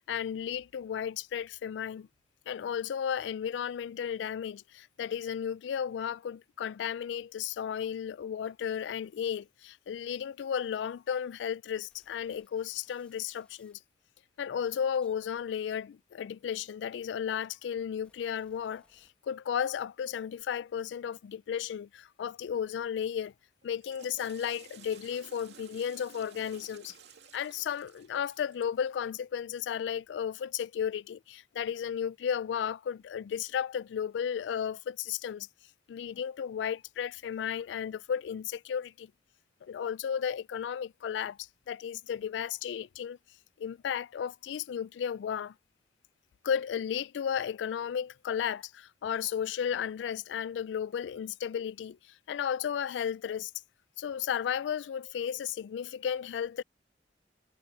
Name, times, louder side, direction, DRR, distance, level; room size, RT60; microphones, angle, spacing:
voice 1, 0.0-2.1 2.5-13.8 14.4-23.3 23.6-26.9 27.3-35.5 35.9-39.1 39.6-43.2 43.6-45.5 46.4-52.0 52.3-53.5 54.0-56.6, left 8 dB, 85° left, 0.3 m, -34 dB
sound 1, 11.9-13.8 14.5-16.9 17.6-19.6 19.9-20.2, left 1 dB, 5° left, 1.8 m, -69 dB
Water / Toilet flush, 23.6-28.9, right 6 dB, 75° right, 2.5 m, -54 dB
head